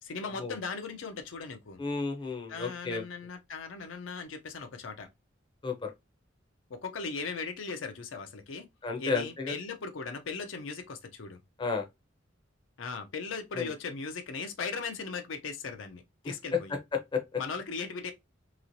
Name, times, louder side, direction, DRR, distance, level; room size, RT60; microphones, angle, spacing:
voice 1, 0.0-1.8 2.5-5.1 6.7-8.7 9.0-11.4 12.8-16.8 17.4-18.1, left 4 dB, 85° left, 0.5 m, -38 dB
voice 2, 1.8-3.0 5.6-5.9 8.8-9.5 11.6-11.9 13.6-13.7 16.2-16.3 16.7-17.4, left 4 dB, 25° left, 0.5 m, -32 dB
3.0 x 2.8 x 2.6 m
head